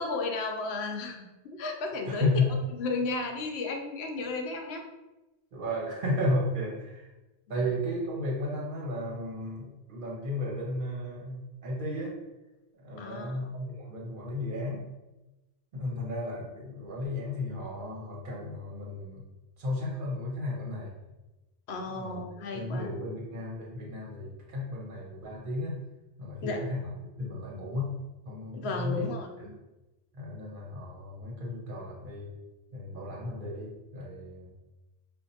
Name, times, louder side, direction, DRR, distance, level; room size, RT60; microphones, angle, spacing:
voice 1, 0.0-2.4 2.8-4.8 7.5-7.7 13.0-13.5 21.7-22.9 26.4-26.6 28.5-29.5, left 3 dB, 75° left, 3 dB, 0.9 m, -34 dB
voice 2, 2.1-2.5 5.5-7.1 7.5-12.2 12.8-14.8 15.7-19.2 19.6-20.9 22.0-22.2 22.5-25.8 26.2-26.9 27.2-27.9 28.2-29.0 30.1-32.3 32.7-34.5, left 1 dB, 50° right, -3 dB, 1.1 m, -33 dB
5.1 x 2.5 x 2.7 m, 1.0 s
omnidirectional pair, 1.1 m